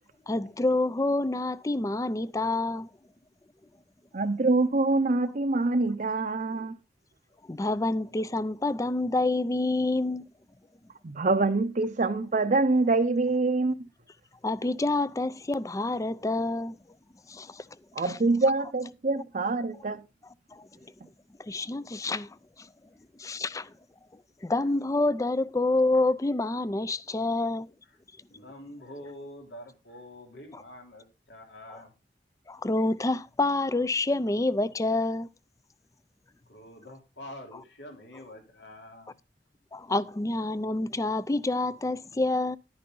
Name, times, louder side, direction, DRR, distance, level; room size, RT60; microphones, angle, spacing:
voice 1, 0.3-2.9 7.5-10.2 14.4-16.8 17.3-17.6 20.5-20.7 21.4-22.4 23.2-23.7 24.4-27.7 31.7-31.8 32.5-35.3 39.7-42.6, left 2 dB, 20° left, 0.5 m, -27 dB
voice 2, 4.1-6.7 11.0-13.8 17.9-20.0, right 3 dB, 45° right, 0.7 m, -25 dB
voice 3, 28.3-31.9 36.5-39.1, left 1 dB, 85° left, 3.5 m, -46 dB
11.5 x 9.6 x 3.8 m
head